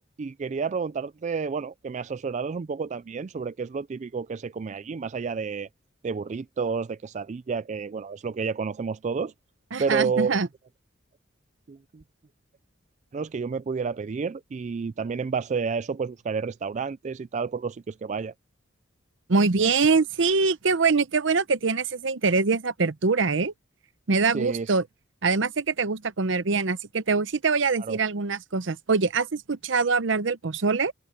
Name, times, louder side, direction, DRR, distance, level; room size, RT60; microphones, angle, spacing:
voice 1, 0.0-5.7 6.0-9.3 9.8-10.4 11.7-12.0 13.1-18.3 24.3-24.7 27.8-28.0, right 5 dB, 35° right, 0.3 m, -30 dB
voice 2, 9.7-10.5 19.3-23.5 24.1-24.8 25.2-30.9, right 4 dB, 70° right, 0.8 m, -24 dB
open air
head